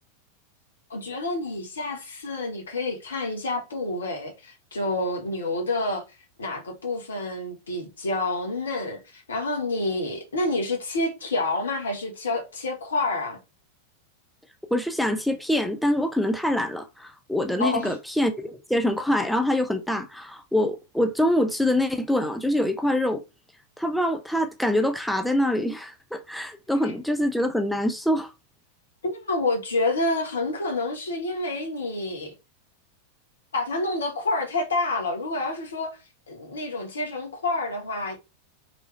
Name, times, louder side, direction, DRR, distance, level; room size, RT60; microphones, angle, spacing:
voice 1, 0.9-6.0 6.4-13.4 17.6-17.9 29.0-32.3 33.5-36.0 36.3-38.2, left 2 dB, 70° left, 1.2 m, -28 dB
voice 2, 14.7-23.2 23.8-28.3, left 1 dB, ahead, 0.5 m, -25 dB
3.3 x 3.0 x 3.2 m
figure-of-eight pair, 90°, 0 cm